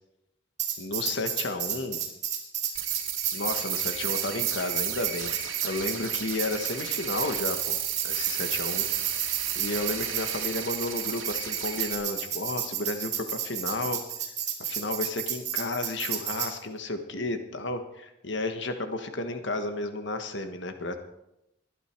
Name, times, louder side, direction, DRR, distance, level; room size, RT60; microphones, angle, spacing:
Tambourine, 0.6-16.5, right 9 dB, 35° right, 2.3 m, -32 dB
voice 1, 0.8-2.0 3.3-7.8 8.0-8.8 9.5-14.0 14.7-21.0, left 2 dB, 65° left, 7 dB, 1.5 m, -32 dB
sound 1, 2.7-11.9, right 10 dB, 85° right, 2.3 m, -34 dB
20.5 x 11.0 x 4.6 m, 0.85 s
head